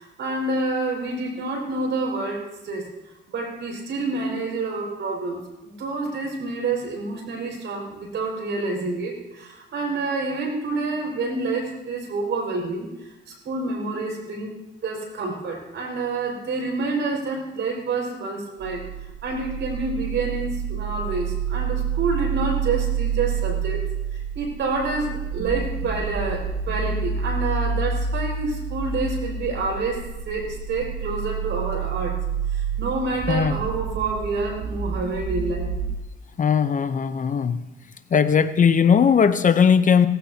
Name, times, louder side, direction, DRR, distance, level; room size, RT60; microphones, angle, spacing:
voice 1, 0.0-2.9 3.3-14.6 14.8-18.8 19.2-23.8 24.1-32.2 32.5-35.8, right 3 dB, 65° right, 1 dB, 5.6 m, -28 dB
sound 1, 18.6-36.0, right 6 dB, 50° right, 1.4 m, -28 dB
voice 2, 36.4-37.6 38.1-40.1, left 7 dB, 40° left, 11 dB, 0.8 m, -18 dB
17.5 x 15.0 x 2.9 m, 1.0 s
cardioid pair, 90°, 20 cm